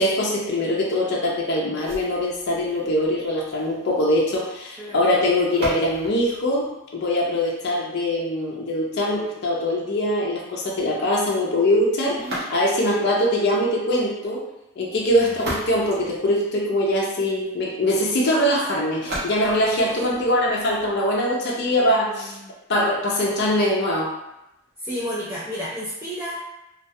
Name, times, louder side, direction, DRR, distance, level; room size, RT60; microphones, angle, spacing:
voice 1, 0.0-6.7 6.9-14.4 14.8-22.4 22.7-24.1, left 1 dB, 55° left, -3 dB, 0.5 m, -22 dB
sound 1, 1.8-7.8 12.1-13.0 15.0-17.0 19.0-21.0, right 1 dB, 55° right, 0.8 m, -37 dB
voice 2, 4.8-5.1 12.1-12.5 15.2-15.3 19.9-20.3 21.6-22.5 24.8-26.4, equal, 10° right, -8 dB, 0.4 m, -33 dB
2.2 x 2.2 x 2.6 m, 0.92 s
head